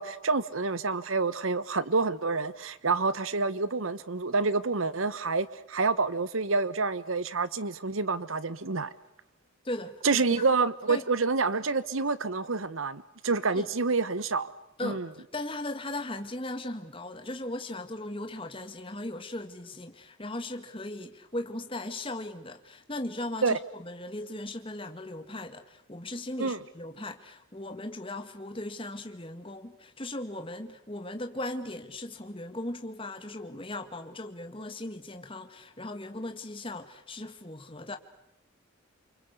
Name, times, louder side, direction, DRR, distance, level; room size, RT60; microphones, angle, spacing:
voice 1, 0.0-8.9 10.0-14.5 14.8-15.1 23.4-23.5 26.4-26.6, right 4 dB, 75° right, 1.1 m, -28 dB
voice 2, 9.6-10.2 10.9-11.0 13.6-13.7 14.8-15.0 15.3-38.0, left 1 dB, 25° left, 1.8 m, -38 dB
28.5 x 25.0 x 8.2 m
head